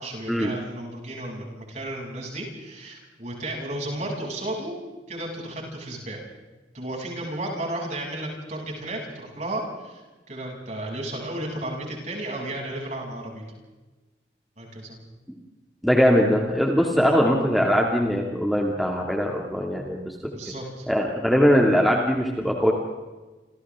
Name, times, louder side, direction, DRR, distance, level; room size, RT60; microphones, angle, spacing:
voice 1, 0.0-4.7 5.1-6.2 6.7-13.4 14.6-15.0 16.9-17.1 20.3-20.9, right 1 dB, 40° right, -2 dB, 7.7 m, -33 dB
voice 2, 15.8-20.2 20.9-22.7, equal, ahead, -1 dB, 2.4 m, -21 dB
29.5 x 28.5 x 3.7 m, 1.2 s
head